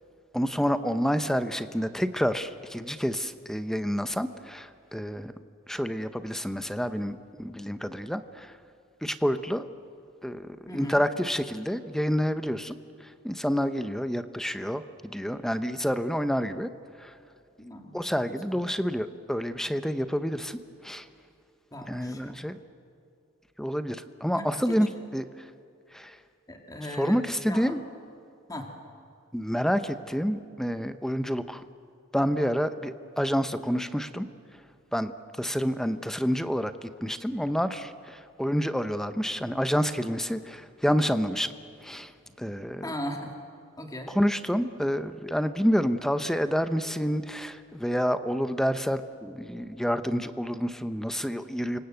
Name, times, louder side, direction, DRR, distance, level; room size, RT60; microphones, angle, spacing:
voice 1, 0.3-5.3 5.7-8.6 9.0-9.7 10.2-16.7 17.0-17.1 17.9-21.1 21.8-22.6 23.6-25.5 25.9-26.2 27.0-27.8 29.3-31.6 32.1-34.3 34.9-41.5 41.8-42.1 42.4-42.9 44.1-51.8, equal, ahead, 10 dB, 0.9 m, -28 dB
voice 2, 10.7-11.0 17.6-18.0 18.3-18.7 21.7-22.4 24.3-24.8 26.5-27.2 27.5-27.7 28.5-28.7 42.8-43.3 43.8-44.1, equal, 15° left, 2 dB, 2.6 m, -38 dB
29.0 x 25.5 x 8.0 m, 2.5 s
head